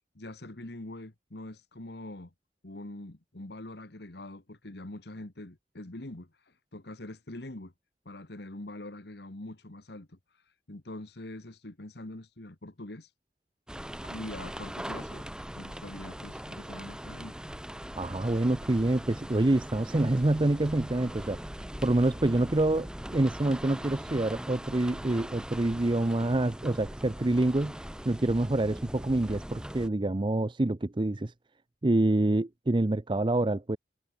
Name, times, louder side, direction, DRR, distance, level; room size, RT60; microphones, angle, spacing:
voice 1, 0.1-2.3 2.6-7.7 8.0-13.1 14.0-15.2 15.5-17.4, left 1 dB, 65° left, 1.7 m, -44 dB
sound 1, 13.7-29.9, equal, 5° right, 1.0 m, -41 dB
voice 2, 18.0-21.4 21.8-27.8 28.0-31.3 31.8-33.8, right 2 dB, 30° right, 0.6 m, -26 dB
head